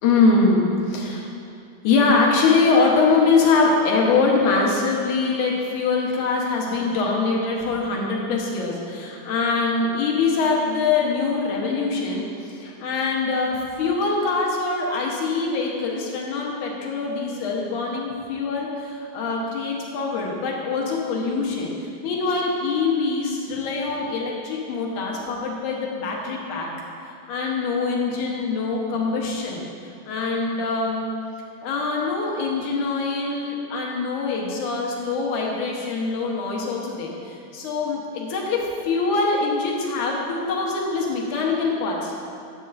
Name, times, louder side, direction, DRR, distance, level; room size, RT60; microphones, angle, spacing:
voice 1, 0.0-1.3 1.8-26.7 27.3-29.6 30.1-31.1 31.6-42.2, left 4 dB, 80° left, -2 dB, 2.7 m, -23 dB
12.5 x 9.1 x 2.6 m, 2.5 s
omnidirectional pair, 3.5 m